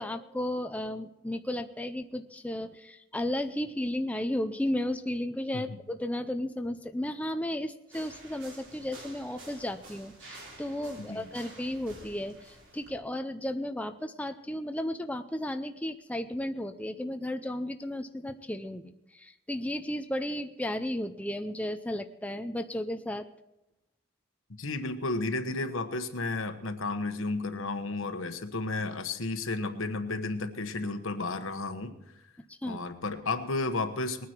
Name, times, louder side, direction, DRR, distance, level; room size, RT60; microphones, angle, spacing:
voice 1, 0.0-23.3 32.5-32.8, left 1 dB, 5° left, 8 dB, 0.5 m, -34 dB
sound 1, 7.9-12.9, right 2 dB, 60° right, 3.9 m, -50 dB
voice 2, 11.0-11.3 24.6-31.9 32.6-34.3, left 3 dB, 70° left, 8 dB, 1.2 m, -32 dB
20.5 x 9.6 x 4.5 m, 0.90 s
head